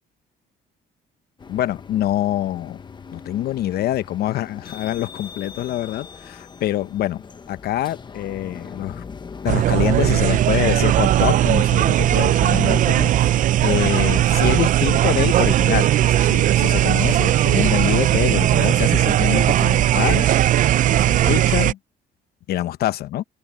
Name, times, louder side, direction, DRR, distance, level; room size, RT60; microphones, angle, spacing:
sound 1, 1.4-10.6, left 5 dB, 25° left, 1.1 m, -40 dB
voice 1, 1.5-2.8 3.1-7.2 7.5-9.0 9.4-20.3 20.8-21.8 22.5-23.2, left 13 dB, 65° left, 1.0 m, -25 dB
sound 2, 9.5-21.7, right 13 dB, 50° right, 0.4 m, -18 dB
open air
cardioid pair, 110°, 17 cm